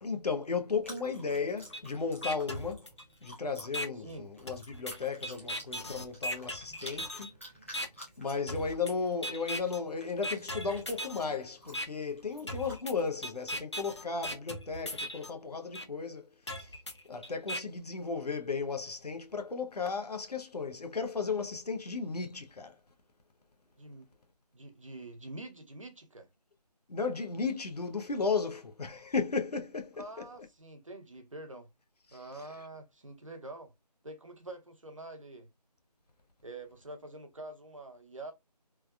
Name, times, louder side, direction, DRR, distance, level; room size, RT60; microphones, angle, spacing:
voice 1, 0.0-2.9 3.2-7.3 8.2-16.8 17.1-22.7 26.9-30.3 32.4-32.5, left 5 dB, 70° left, 0.7 m, -35 dB
Chewing mastication, 0.7-12.8, equal, 20° left, 0.7 m, -53 dB
sound 1, 1.7-1.8 2.2-3.3 3.7-3.9 4.5-7.3 7.7-7.9 8.5-8.9 9.2-9.8 10.2-11.2 11.7-11.9 12.5-15.3 15.7-15.8 16.5-17.6, equal, 45° left, 0.4 m, -38 dB
voice 2, 24.5-26.3 30.0-31.7 32.1-33.7 34.0-35.5 36.4-38.3, right 2 dB, 50° right, 0.6 m, -46 dB
3.3 x 2.2 x 2.2 m
figure-of-eight pair, 180°, 21 cm